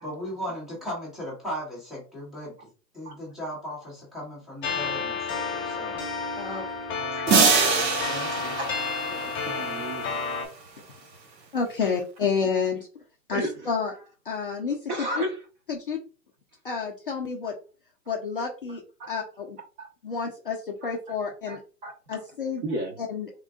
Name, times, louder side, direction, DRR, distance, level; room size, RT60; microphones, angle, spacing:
voice 1, 0.0-2.7 2.9-6.0 7.3-8.6, equal, ahead, 0.7 m, -37 dB
sound 1, 4.6-10.5, left 5 dB, 15° left, 1.1 m, -31 dB
voice 2, 7.1-7.6 8.6-8.8 9.4-10.0 11.8-11.9 13.3-13.7 14.9-15.4 19.0-19.1 19.8-19.9 20.8-21.2 21.5-22.2 22.6-23.0, right 1 dB, 30° right, 1.0 m, -34 dB
sound 2, 7.3-9.8, right 5 dB, 80° right, 1.0 m, -24 dB
voice 3, 9.1-9.7 11.5-12.9 13.3-13.9 14.3-14.8 15.2-15.3 15.7-16.0 16.6-17.5 18.1-18.8 19.1-19.6 20.0-21.6 22.1-22.6 23.0-23.3, left 5 dB, 35° left, 0.4 m, -29 dB
3.6 x 3.6 x 2.3 m
hypercardioid pair, 150°, 50 cm